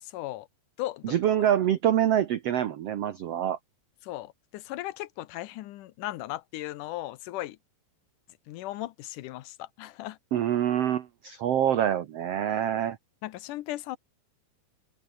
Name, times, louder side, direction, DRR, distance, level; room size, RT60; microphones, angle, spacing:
voice 1, 0.0-0.5 0.8-1.2 4.0-7.6 8.5-10.2 13.2-14.0, left 16 dB, 75° left, 2.1 m, -37 dB
voice 2, 1.0-3.6 10.3-13.0, right 10 dB, 70° right, 1.5 m, -25 dB
open air
omnidirectional pair, 4.3 m